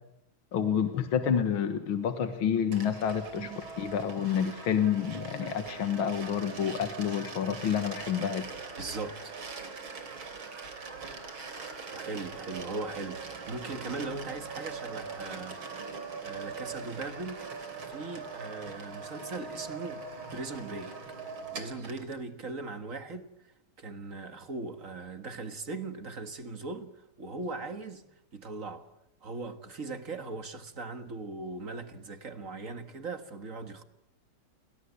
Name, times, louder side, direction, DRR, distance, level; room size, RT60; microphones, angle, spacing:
voice 1, 0.5-8.4, left 8 dB, 80° left, 2.3 m, -29 dB
sound 1, 2.7-22.2, right 5 dB, 80° right, 4.0 m, -42 dB
voice 2, 8.8-9.3 11.9-15.6 16.2-17.5 17.8-20.0 20.3-20.9 21.5-23.3 23.8-28.0 28.3-28.9 29.2-33.8, right 3 dB, 40° right, 2.0 m, -39 dB
29.0 x 21.5 x 8.3 m
omnidirectional pair, 2.2 m